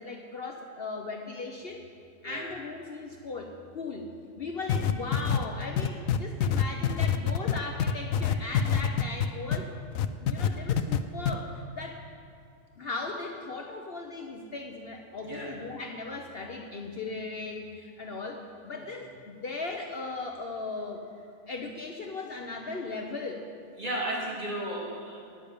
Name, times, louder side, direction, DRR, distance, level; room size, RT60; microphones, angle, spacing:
voice 1, 0.0-1.8 2.2-4.1 4.4-9.7 10.1-12.0 12.8-21.0 21.5-23.5, left 3 dB, 50° left, 2 dB, 1.0 m, -38 dB
sound 1, 4.7-9.6 10.0-11.0 11.3-11.4, left 9 dB, 80° left, 1.0 m, -25 dB
voice 2, 15.2-15.5 23.8-25.2, right 1 dB, 35° right, -5 dB, 3.0 m, -34 dB
10.5 x 9.4 x 8.5 m, 2.4 s
omnidirectional pair, 1.4 m